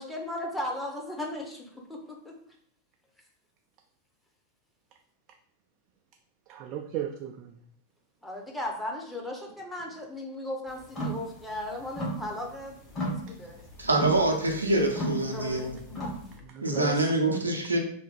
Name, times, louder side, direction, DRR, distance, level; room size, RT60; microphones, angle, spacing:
voice 1, 0.0-2.3 8.2-13.5 15.2-16.1, left 1 dB, 5° left, -1 dB, 0.8 m, -37 dB
voice 2, 6.5-7.5 16.4-17.4, right 10 dB, 40° right, 4 dB, 0.3 m, -36 dB
sound 1, 10.8-11.3 11.6-12.6 12.9-16.4, right 1 dB, 25° left, 1.3 m, -34 dB
voice 3, 13.8-15.8 16.6-17.8, right 2 dB, 80° right, 2 dB, 0.6 m, -25 dB
3.3 x 2.2 x 4.0 m, 0.63 s
figure-of-eight pair, 90°, 0 cm